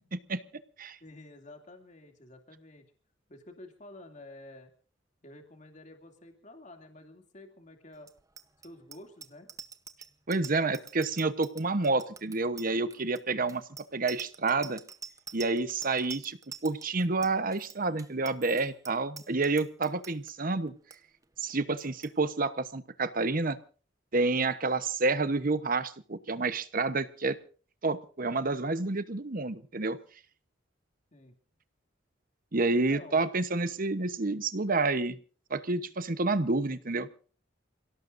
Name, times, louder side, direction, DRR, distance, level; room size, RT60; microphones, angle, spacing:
voice 1, 0.1-0.4 0.8-1.0 10.3-13.6 13.9-14.8 15.3-16.4 16.6-20.7 21.4-23.6 24.1-27.4 27.8-30.0 32.5-35.2 35.5-37.1, right 3 dB, 45° right, 12 dB, 1.0 m, -29 dB
voice 2, 1.0-2.8 3.3-4.7 5.2-8.1 8.6-9.5 10.5-10.8 21.6-21.9 31.1-31.4 32.6-33.3, left 2 dB, 40° left, 4 dB, 2.7 m, -50 dB
Bicycle bell, 8.0-20.3 20.7-21.0 21.2-21.5 21.8-22.1, right 6 dB, 20° right, 0.9 m, -46 dB
28.5 x 17.0 x 2.6 m, 0.40 s
head